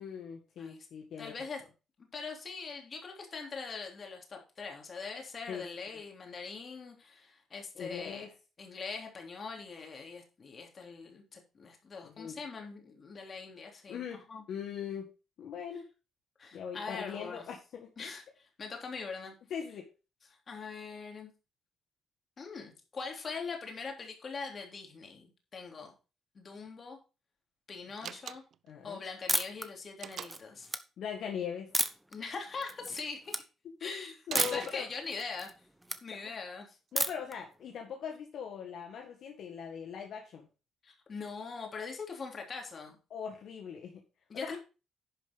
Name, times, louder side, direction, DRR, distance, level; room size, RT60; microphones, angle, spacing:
voice 1, 0.0-1.3 5.5-5.6 7.8-8.3 12.0-12.4 13.9-15.1 15.4-15.8 16.5-18.1 19.5-19.9 28.0-28.1 28.7-29.0 31.0-31.7 33.8-34.9 36.1-36.2 36.9-40.5 43.1-43.9 44.5-44.6, left 7 dB, 70° left, 2 dB, 1.8 m, -40 dB
voice 2, 1.2-1.6 2.1-8.3 8.6-14.4 16.4-17.5 18.0-19.3 20.5-21.3 22.4-25.9 26.3-27.0 27.7-28.4 28.8-30.7 32.1-33.3 33.8-34.2 34.5-35.5 36.0-36.8 40.8-43.0 44.3-44.6, left 4 dB, 40° left, 2 dB, 3.3 m, -42 dB
Slam, 28.0-28.7 30.0-30.6 34.2-35.3, right 9 dB, 60° right, 0.5 m, -41 dB
sound 1, 29.3-29.7 30.1-30.8 31.7-32.1 32.6-33.0 33.3-33.4 34.3-34.7 35.1-36.0 37.0-37.3, right 1 dB, 5° right, 1.0 m, -31 dB
11.0 x 5.3 x 5.4 m, 0.32 s
cardioid pair, 90°, 0 cm